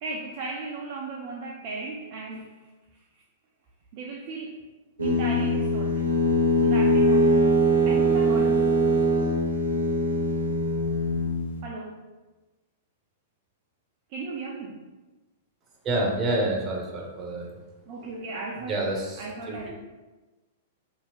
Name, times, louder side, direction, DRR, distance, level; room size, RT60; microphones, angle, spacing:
voice 1, 0.0-2.7 3.9-4.6 5.0-6.0 6.6-7.5 7.9-9.1 11.6-12.0 14.1-14.8 17.9-18.7 19.2-19.7, right 3 dB, 45° right, -2 dB, 0.4 m, -36 dB
sound 1, 5.0-11.5, equal, 80° right, 0.6 m, -22 dB
voice 2, 15.8-17.6 18.6-19.7, right 2 dB, 25° right, -2 dB, 0.7 m, -28 dB
2.7 x 2.4 x 3.2 m, 1.2 s
figure-of-eight pair, 100°, 0 cm